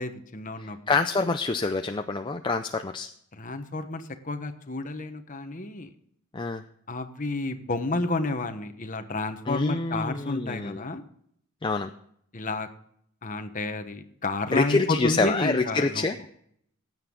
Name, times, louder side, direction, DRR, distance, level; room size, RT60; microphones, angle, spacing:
voice 1, 0.0-0.8 3.3-5.9 6.9-11.0 12.3-12.7 13.2-16.1, left 2 dB, 40° left, 8 dB, 1.2 m, -30 dB
voice 2, 0.6-3.1 6.3-6.6 9.5-10.8 11.6-11.9 14.5-16.2, left 3 dB, 20° left, 6 dB, 0.5 m, -26 dB
16.0 x 9.1 x 3.8 m, 0.68 s
head